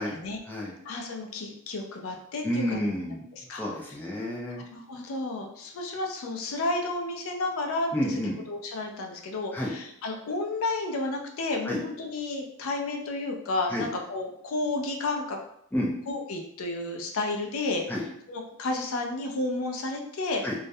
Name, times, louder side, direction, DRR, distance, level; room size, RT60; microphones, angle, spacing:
voice 1, 0.0-0.4 0.9-2.6 3.5-3.6 4.7-8.1 8.5-15.4 16.1-17.8 18.3-20.4, left 2 dB, 80° left, 2 dB, 0.4 m, -31 dB
voice 2, 2.4-3.2 3.6-4.6 7.9-8.3 9.5-9.7 11.6-11.8 13.7-13.9 15.7-15.9 17.9-18.0 20.4-20.5, equal, 10° left, -4 dB, 0.4 m, -30 dB
2.3 x 2.0 x 2.6 m, 0.73 s
head